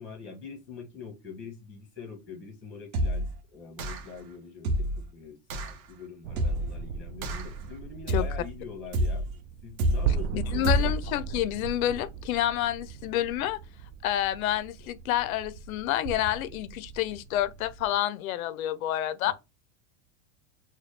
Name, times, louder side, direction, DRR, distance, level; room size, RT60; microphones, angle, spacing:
voice 1, 0.0-9.2 9.6-10.9 19.2-19.3, left 5 dB, 5° left, 0.8 m, -44 dB
sound 1, 2.9-3.4 3.8-4.2 4.6-5.1 5.5-5.8 6.4-6.8 7.2-7.6 8.1-8.5 8.9-9.4 9.8-10.2 10.6-11.1, right 1 dB, 80° right, 1.0 m, -28 dB
sound 2, 6.2-18.0, right 7 dB, 55° right, 0.5 m, -38 dB
voice 2, 10.3-13.6 14.0-19.3, left 12 dB, 80° left, 0.5 m, -29 dB
4.2 x 2.2 x 3.2 m
supercardioid pair, 165°, 42 cm